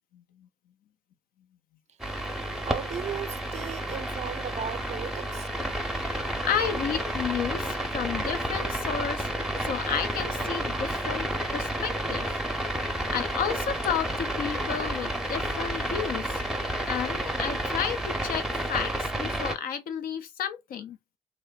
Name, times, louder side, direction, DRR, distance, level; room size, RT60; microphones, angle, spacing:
voice 1, 0.1-0.5 6.0-9.3 9.6-16.4 16.9-21.0, left 8 dB, 70° left, 0.5 m, -32 dB
sound 1, 2.0-19.6, right 1 dB, ahead, 0.7 m, -31 dB
voice 2, 2.6-5.5, right 8 dB, 45° right, 0.4 m, -36 dB
2.9 x 2.0 x 2.3 m
hypercardioid pair, 45°, 15 cm